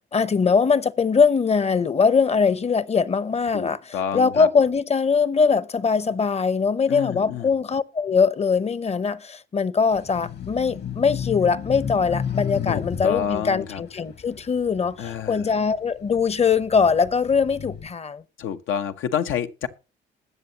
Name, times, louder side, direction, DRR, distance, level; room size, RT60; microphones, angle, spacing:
voice 1, 0.0-18.2, left 5 dB, 30° left, 0.8 m, -21 dB
voice 2, 3.5-4.5 6.9-7.5 12.7-13.8 15.0-15.5 18.4-19.7, left 9 dB, 85° left, 1.0 m, -28 dB
sound 1, 9.9-15.5 16.0-17.9, left 8 dB, 55° left, 1.5 m, -32 dB
21.0 x 7.0 x 2.9 m
cardioid pair, 90°, 20 cm